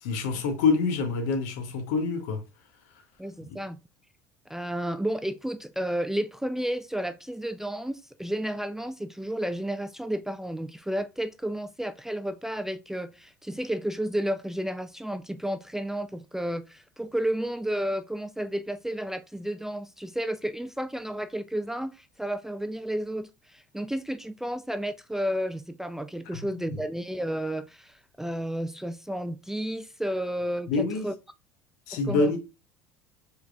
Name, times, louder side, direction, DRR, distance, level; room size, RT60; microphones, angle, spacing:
voice 1, 0.0-2.4 26.3-26.4 26.7-26.8 30.7-31.1 31.9-32.4, left 4 dB, 70° left, 0.9 m, -26 dB
voice 2, 3.2-3.8 4.5-31.1 32.1-32.3, right 1 dB, 5° right, 0.3 m, -32 dB
4.6 x 3.3 x 2.3 m
hypercardioid pair, 70°, 9 cm